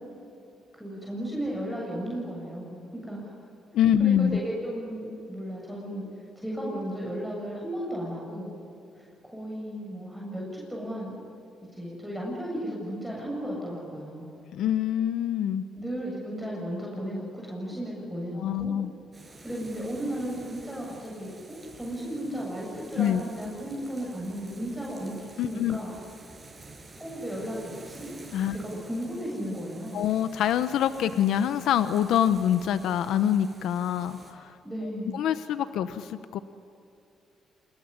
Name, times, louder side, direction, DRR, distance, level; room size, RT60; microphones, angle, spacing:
voice 1, 0.8-3.3 4.0-6.1 6.4-8.5 9.0-9.1 9.3-11.1 11.7-14.3 15.8-18.7 19.4-25.9 27.0-28.1 28.5-30.0 34.6-35.2, equal, ahead, -4 dB, 7.8 m, -35 dB
voice 2, 3.7-4.4 14.5-15.6 18.3-18.9 23.0-23.2 25.4-25.8 28.3-28.6 29.9-34.6 35.1-36.4, left 10 dB, 80° left, 11 dB, 1.0 m, -25 dB
sound 1, 19.1-34.3, right 3 dB, 25° right, 6.8 m, -50 dB
27.5 x 20.5 x 10.0 m, 2.8 s
cardioid pair, 90°, 0 cm